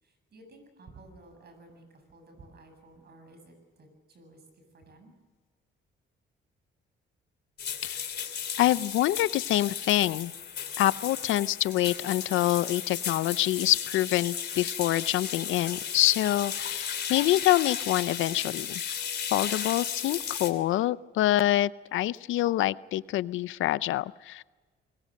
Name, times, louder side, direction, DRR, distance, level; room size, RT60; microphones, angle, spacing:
voice 1, 0.0-5.1, right 2 dB, 55° right, 6 dB, 7.8 m, -54 dB
sound 1, 7.6-20.5, left 8 dB, 55° left, 2.9 m, -35 dB
voice 2, 8.6-10.3 10.8-18.8 19.3-24.4, left 14 dB, 80° left, 18 dB, 0.6 m, -26 dB
25.5 x 21.5 x 6.5 m, 1.4 s
cardioid pair, 90°, 20 cm